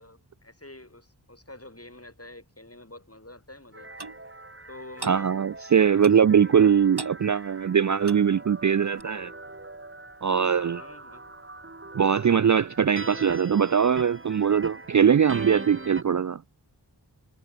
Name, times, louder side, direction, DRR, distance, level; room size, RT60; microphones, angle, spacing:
voice 1, 0.0-3.9 4.7-5.3 5.8-6.3 10.5-11.3, left 1 dB, 35° left, 7.7 m, -47 dB
sound 1, 3.7-16.0, right 2 dB, 30° right, 2.0 m, -42 dB
Clock, 4.0-4.2 5.0-5.2 6.0-6.3 7.0-7.2 8.0-8.3 9.0-9.1, right 3 dB, 65° right, 3.4 m, -37 dB
voice 2, 5.1-9.3 10.2-10.8 11.9-16.4, right 7 dB, 45° right, 0.4 m, -21 dB
wide cardioid pair, 45°, 42 cm